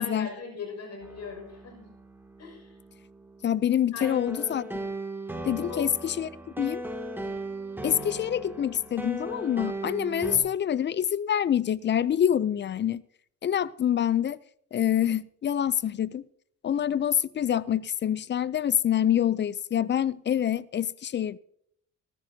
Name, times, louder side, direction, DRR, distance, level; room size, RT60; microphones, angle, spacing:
voice 1, 0.0-1.9 2.4-2.8 3.9-4.1 5.5-6.1, left 4 dB, 60° left, 6.1 m, -40 dB
sound 1, 1.0-10.4, right 1 dB, 5° right, 2.1 m, -38 dB
voice 2, 3.4-4.7 5.4-6.3 6.6-6.8 7.8-13.0 13.4-14.4 14.7-16.2 16.6-21.4, left 10 dB, 40° left, 0.4 m, -26 dB
18.5 x 14.0 x 2.7 m
cardioid pair, 90°, 30 cm